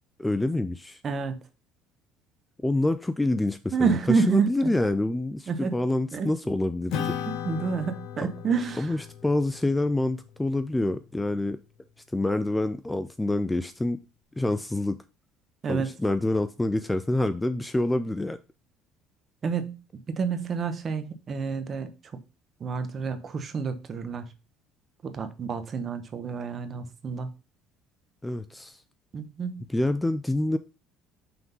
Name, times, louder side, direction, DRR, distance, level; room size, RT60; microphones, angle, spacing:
voice 1, 0.2-1.0 2.6-7.2 8.2-8.3 8.8-11.6 12.1-14.0 14.4-15.0 15.7-18.4 28.2-28.8 29.7-30.6, left 2 dB, 10° left, 0.4 m, -27 dB
voice 2, 1.0-1.4 3.7-4.7 5.5-5.7 6.1-6.3 7.4-8.9 15.6-15.9 19.4-19.8 20.1-21.9 22.6-24.3 25.0-27.3 29.1-29.6, right 5 dB, 35° right, 1.0 m, -28 dB
Acoustic guitar / Strum, 6.9-11.7, left 8 dB, 70° left, 1.3 m, -37 dB
5.9 x 3.7 x 5.4 m
cardioid pair, 135°, 0 cm